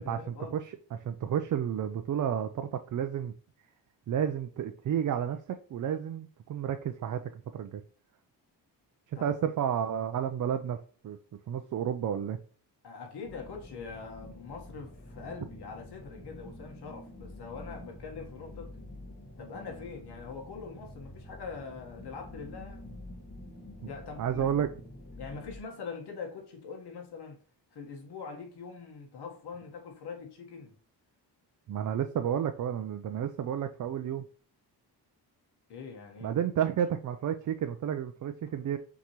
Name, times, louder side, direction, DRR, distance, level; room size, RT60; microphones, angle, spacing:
voice 1, 0.0-0.6 9.1-9.3 12.8-18.8 19.4-23.0 23.9-24.6 25.2-27.4 27.7-30.7 35.7-36.3, left 5 dB, 70° left, 1.3 m, -43 dB
voice 2, 0.5-3.3 4.1-7.8 9.2-10.8 11.0-11.2 11.5-12.4 24.2-24.7 31.7-34.2 36.2-38.8, right 9 dB, 50° right, 0.4 m, -31 dB
sound 1, 13.2-25.6, left 1 dB, 40° left, 1.5 m, -47 dB
5.9 x 3.0 x 2.9 m
cardioid pair, 100°, 41 cm